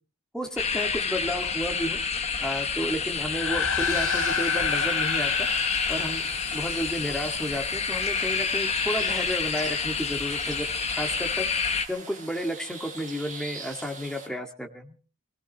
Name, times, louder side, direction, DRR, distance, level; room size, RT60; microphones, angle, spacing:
voice 1, 0.3-2.0 2.4-5.3 5.9-11.5 11.9-15.0, equal, 5° left, 3 dB, 2.0 m, -32 dB
sound 1, 0.6-11.9, left 5 dB, 30° left, 1.2 m, -28 dB
sound 2, 3.2-6.9, left 6 dB, 90° left, 4.0 m, -29 dB
sound 3, 3.8-14.3, right 4 dB, 40° right, 4.6 m, -42 dB
25.0 x 16.5 x 3.1 m, 0.36 s
head